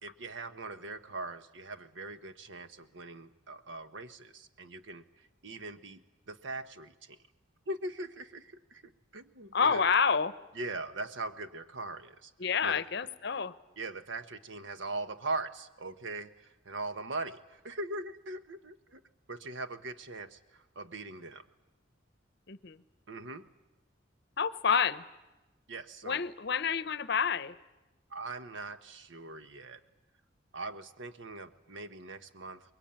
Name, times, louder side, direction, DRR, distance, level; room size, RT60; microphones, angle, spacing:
voice 1, 0.0-6.0 6.3-7.2 7.7-9.8 10.5-12.3 12.6-12.8 13.8-19.0 19.3-21.4 23.1-23.5 25.7-26.2 28.1-29.8 30.5-32.6, right 2 dB, 75° right, 11 dB, 1.2 m, -41 dB
voice 2, 9.5-10.3 12.4-13.5 22.5-22.8 24.4-25.0 26.0-27.5, left 6 dB, 60° left, 16 dB, 0.8 m, -28 dB
23.5 x 22.0 x 8.9 m, 1.1 s
head